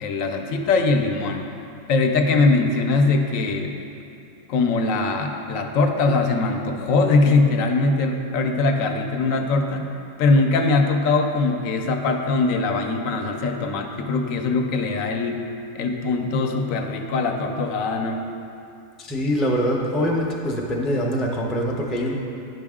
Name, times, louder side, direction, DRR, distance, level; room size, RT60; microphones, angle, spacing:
voice 1, 0.0-1.4 1.9-3.8 4.5-9.9 10.2-15.4 15.7-18.2, left 3 dB, 80° left, 4 dB, 1.0 m, -21 dB
voice 2, 19.0-22.1, equal, ahead, -2 dB, 0.3 m, -24 dB
9.3 x 5.9 x 3.6 m, 2.6 s
omnidirectional pair, 1.4 m